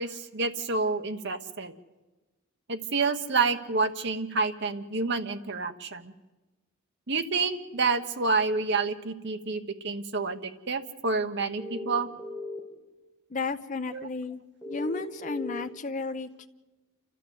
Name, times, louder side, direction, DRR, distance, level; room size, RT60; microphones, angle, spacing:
voice 1, 0.0-1.7 2.7-6.1 7.1-12.1 13.9-14.1, right 4 dB, 55° right, 7 dB, 1.2 m, -28 dB
sound 1, 11.6-12.6 14.6-15.6, left 2 dB, 5° right, 4.3 m, -37 dB
voice 2, 13.3-16.5, left 3 dB, 35° left, 7 dB, 0.7 m, -33 dB
29.0 x 13.0 x 8.3 m, 1.1 s
head